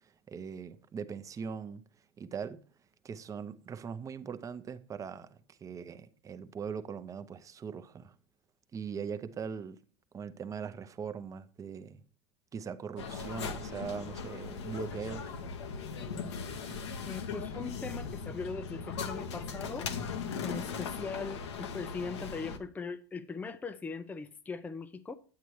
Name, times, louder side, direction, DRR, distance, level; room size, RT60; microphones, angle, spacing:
voice 1, 0.0-1.8 2.2-2.6 3.0-8.1 8.7-9.8 10.1-12.0 12.5-15.4 16.7-16.8, right 6 dB, 25° right, 0.7 m, -41 dB
sound 1, 13.0-22.6, left 5 dB, 80° left, 1.0 m, -39 dB
voice 2, 17.0-19.9 20.4-25.1, left 4 dB, 10° left, 0.5 m, -40 dB
9.0 x 8.4 x 3.2 m
hypercardioid pair, 105°, 14 cm